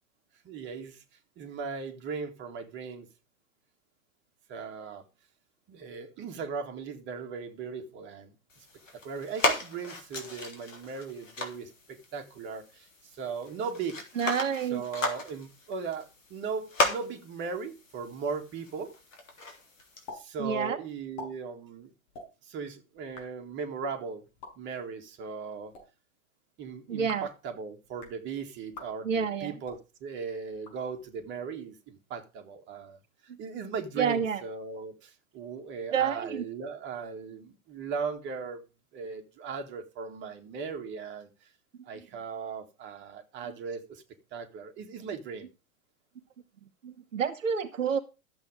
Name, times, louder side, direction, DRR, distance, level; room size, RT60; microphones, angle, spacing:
voice 1, 0.4-1.0 1.4-3.1 4.5-5.0 5.7-8.7 9.0-14.0 14.6-18.9 20.1-21.9 22.4-24.3 24.6-25.7 26.6-33.0 33.4-38.6 38.9-41.3 41.8-44.0 44.3-45.5, right 5 dB, 25° right, 2.1 m, -38 dB
sound 1, 8.5-20.1, left 2 dB, 65° left, 3.4 m, -36 dB
voice 2, 14.2-14.8 20.4-20.8 26.9-27.3 29.0-29.5 33.3-33.4 34.0-34.4 35.9-36.4 46.8-48.0, right 7 dB, 65° right, 1.2 m, -29 dB
sound 2, 20.1-20.2 20.5-20.6 21.0-21.3 22.1-22.3 23.0-23.3 24.2-24.5 25.5-25.8 26.9-27.3 27.8-28.2 28.7-28.9 29.6-29.8 30.5-31.2, left 3 dB, 40° left, 5.9 m, -46 dB
12.5 x 7.9 x 5.0 m
figure-of-eight pair, 100°, 41 cm